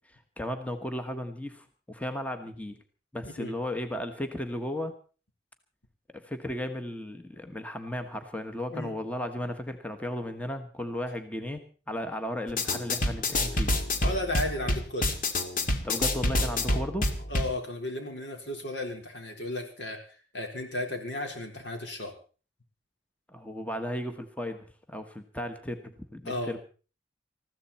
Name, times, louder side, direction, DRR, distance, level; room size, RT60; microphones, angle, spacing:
voice 1, 0.1-2.8 3.1-4.9 6.1-13.7 15.8-17.1 23.3-26.6, left 1 dB, 10° left, 8 dB, 1.2 m, -35 dB
sound 1, 12.5-17.5, left 1 dB, 50° left, 1.8 m, -28 dB
voice 2, 14.0-15.1 17.3-22.1 26.2-26.5, left 1 dB, 75° left, 3 dB, 4.1 m, -34 dB
20.5 x 15.0 x 4.3 m, 0.38 s
head